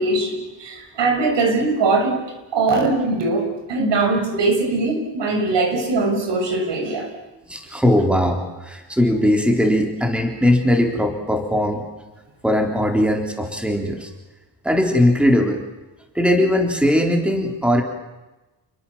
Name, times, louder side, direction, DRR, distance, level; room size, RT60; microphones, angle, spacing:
voice 1, 0.0-2.2 2.5-7.1, right 3 dB, 85° right, 5 dB, 6.7 m, -21 dB
voice 2, 7.5-11.8 12.4-14.1 14.6-15.6 16.1-17.8, left 1 dB, 5° right, 3 dB, 3.8 m, -19 dB
29.5 x 22.0 x 7.4 m, 1.1 s
wide cardioid pair, 155°, 42 cm